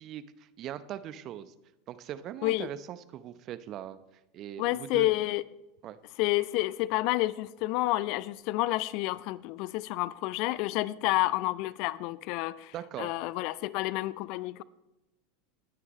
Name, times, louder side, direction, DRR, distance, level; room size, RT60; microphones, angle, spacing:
voice 1, 0.0-1.5 1.9-4.0 4.3-5.1 5.8-6.0 11.2-11.3 12.7-13.1, right 11 dB, 40° right, 0.8 m, -40 dB
voice 2, 4.6-5.4 6.2-14.6, left 18 dB, 50° left, 0.4 m, -29 dB
20.0 x 9.5 x 3.2 m
figure-of-eight pair, 85°, 0 cm